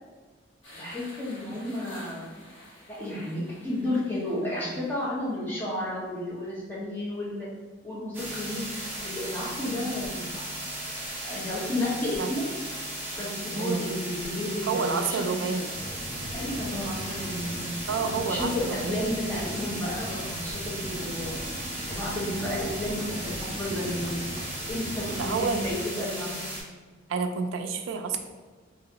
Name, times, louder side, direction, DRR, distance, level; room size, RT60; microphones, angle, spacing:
sound 1, 0.6-5.9, left 1 dB, 75° left, 1.2 m, -51 dB
voice 1, 0.7-2.3 2.9-7.5 7.8-10.4 11.2-12.5 13.1-15.4 16.3-17.8 18.1-21.3 21.9-24.3 24.7-26.4, left 1 dB, 10° left, -8 dB, 1.0 m, -32 dB
sound 2, 8.1-26.6, right 1 dB, 10° right, 0.8 m, -36 dB
voice 2, 13.6-14.0 14.6-15.7 17.9-19.0 25.2-25.6 27.1-28.2, right 5 dB, 80° right, 6 dB, 0.4 m, -29 dB
sound 3, 15.7-25.8, equal, 30° right, 1.1 m, -39 dB
2.9 x 2.7 x 3.8 m, 1.4 s
head